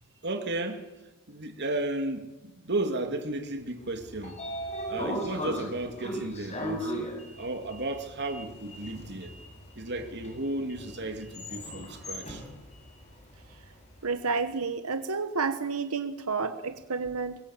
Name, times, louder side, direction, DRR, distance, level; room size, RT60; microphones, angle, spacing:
voice 1, 0.2-0.8 1.3-4.4 4.9-6.9 7.4-9.3 9.8-12.4, right 2 dB, 50° right, 2.8 m, -33 dB
Sliding door, 3.8-14.0, equal, 30° left, 7.9 m, -38 dB
voice 2, 14.0-17.4, right 4 dB, 85° right, 1.2 m, -30 dB
25.5 x 22.5 x 7.5 m
head